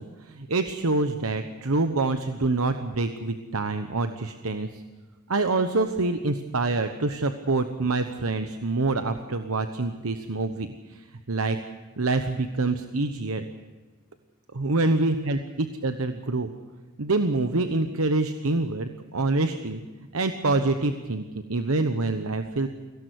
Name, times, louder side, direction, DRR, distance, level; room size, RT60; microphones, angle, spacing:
voice 1, 0.0-4.8 5.3-11.6 12.0-13.5 14.5-16.5 17.0-19.8 20.1-22.7, right 3 dB, 80° right, 8 dB, 1.1 m, -26 dB
23.0 x 17.0 x 8.2 m, 1.3 s
head